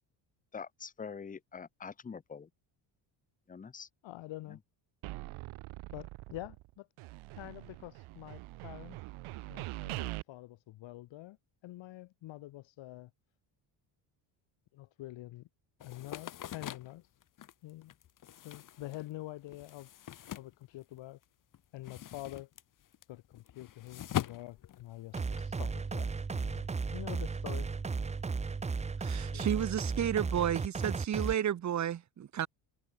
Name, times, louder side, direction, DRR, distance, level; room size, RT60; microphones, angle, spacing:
voice 1, 0.5-2.5 3.5-3.9, left 6 dB, 15° left, 1.1 m, -44 dB
voice 2, 4.0-4.6 5.9-6.9 7.4-9.0 9.5-11.4 11.6-13.1 14.7-15.5 15.8-17.0 17.6-17.9 18.4-19.9 20.3-21.2 21.7-22.5 23.1-26.7 26.9-27.7 29.3-29.6 30.0-30.1, left 16 dB, 65° left, 2.3 m, -46 dB
sound 1, 5.0-6.7 7.0-10.2, right 19 dB, 80° right, 2.1 m, -43 dB
sound 2, 15.8-21.2 21.5-25.4, left 11 dB, 40° left, 1.5 m, -42 dB
sound 3, 25.1-31.3, right 4 dB, 15° right, 0.9 m, -35 dB
voice 3, 29.0-32.5, right 10 dB, 35° right, 1.3 m, -32 dB
cardioid pair, 160°, 48 cm